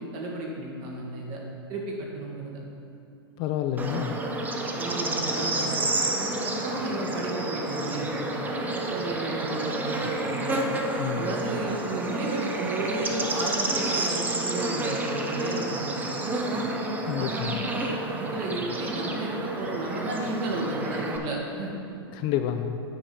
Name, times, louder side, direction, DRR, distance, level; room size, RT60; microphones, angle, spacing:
voice 1, 0.0-1.4 1.7-2.5 4.7-5.8 6.1-10.7 11.1-16.0 16.5-16.7 17.2-21.8, right 2 dB, 40° right, -1 dB, 1.7 m, -33 dB
voice 2, 3.4-4.2 11.0-11.3 17.1-17.6 22.1-22.8, left 10 dB, 35° left, 7 dB, 0.4 m, -29 dB
Bird / Insect, 3.8-21.2, right 2 dB, 10° right, 0.6 m, -30 dB
9.0 x 5.0 x 4.4 m, 2.6 s
hypercardioid pair, 125°, 14 cm